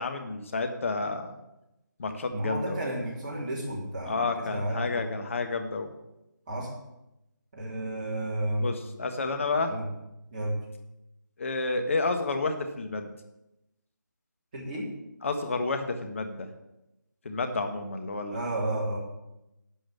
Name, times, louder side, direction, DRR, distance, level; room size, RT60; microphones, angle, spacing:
voice 1, 0.0-1.3 2.0-2.8 4.0-5.9 8.6-9.7 11.4-13.1 15.2-16.5 17.2-18.4, left 3 dB, 40° left, 6 dB, 1.4 m, -30 dB
voice 2, 2.3-5.1 6.5-6.7 7.5-8.7 9.7-9.9 10.3-10.6 14.5-14.9 18.3-19.0, right 1 dB, 25° right, -4 dB, 3.1 m, -32 dB
11.5 x 5.6 x 8.4 m, 0.92 s
figure-of-eight pair, 160°, 11 cm